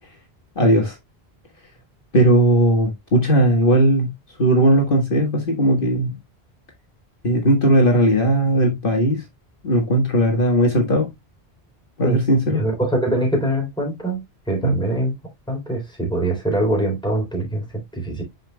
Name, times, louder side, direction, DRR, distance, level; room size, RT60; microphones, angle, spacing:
voice 1, 0.6-1.0 2.1-4.1 4.4-6.2 7.2-9.2 9.6-11.1 12.0-12.6 14.6-14.7, right 1 dB, 55° left, 1.8 m, -17 dB
voice 2, 12.5-15.1 15.5-18.2, right 1 dB, 5° left, 3.6 m, -23 dB
10.0 x 5.3 x 2.3 m
omnidirectional pair, 1.1 m